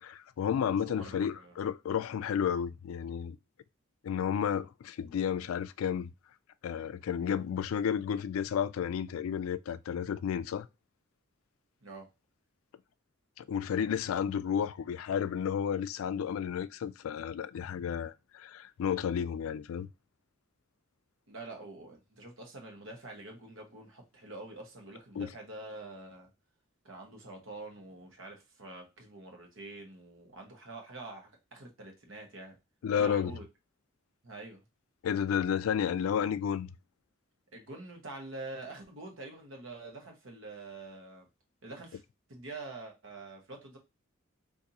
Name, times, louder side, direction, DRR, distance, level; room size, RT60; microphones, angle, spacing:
voice 1, 0.0-3.4 4.0-6.1 6.6-10.7 13.4-19.9 25.2-25.3 32.8-33.4 35.0-36.7, left 8 dB, 90° left, 0.3 m, -32 dB
voice 2, 0.8-1.6 11.8-12.1 21.3-26.3 26.8-32.6 32.9-33.5 34.2-34.6 37.5-41.3 41.6-42.0 42.3-43.8, right 2 dB, 65° right, 1.0 m, -46 dB
3.9 x 2.6 x 2.8 m
head